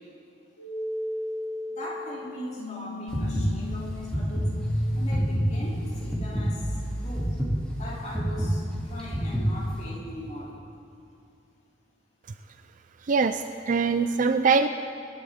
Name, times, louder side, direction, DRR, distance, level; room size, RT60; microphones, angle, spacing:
sound 1, 0.6-8.5, equal, 85° left, 1.8 m, -33 dB
voice 1, 1.7-4.5 4.9-7.4 7.8-10.6, equal, 40° left, -5 dB, 3.0 m, -40 dB
sound 2, 3.1-9.8, equal, 5° left, 2.6 m, -29 dB
voice 2, 13.1-14.7, right 5 dB, 45° right, 9 dB, 0.4 m, -23 dB
25.0 x 11.5 x 3.7 m, 2.6 s
head